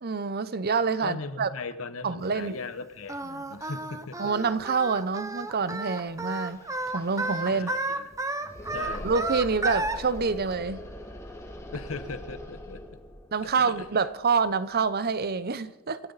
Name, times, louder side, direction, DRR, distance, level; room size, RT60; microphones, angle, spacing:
voice 1, 0.0-1.5 2.0-2.6 4.2-6.6 6.9-7.7 9.0-10.8 13.3-16.0, right 5 dB, 45° right, 0.7 m, -27 dB
voice 2, 1.0-4.3 7.5-8.1 8.7-9.1 11.7-12.8 13.4-13.7, left 3 dB, 65° left, 1.2 m, -38 dB
Singing, 3.1-10.0, right 2 dB, 15° right, 1.0 m, -32 dB
sound 1, 6.4-15.2, left 1 dB, 15° left, 1.8 m, -43 dB
26.0 x 13.0 x 4.1 m
head